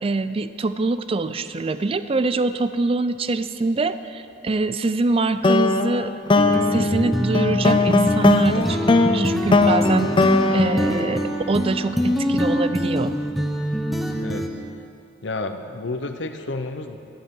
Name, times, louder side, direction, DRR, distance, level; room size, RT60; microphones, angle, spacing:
voice 1, 0.0-6.1 6.5-13.2, right 3 dB, 30° right, 12 dB, 0.4 m, -24 dB
sound 1, 5.4-11.9, left 3 dB, 25° left, 0.5 m, -20 dB
sound 2, 6.4-14.5, equal, ahead, 0.8 m, -24 dB
voice 2, 14.1-14.5 15.2-17.0, left 2 dB, 70° left, 6 dB, 0.9 m, -30 dB
18.5 x 12.5 x 3.8 m, 2.6 s
head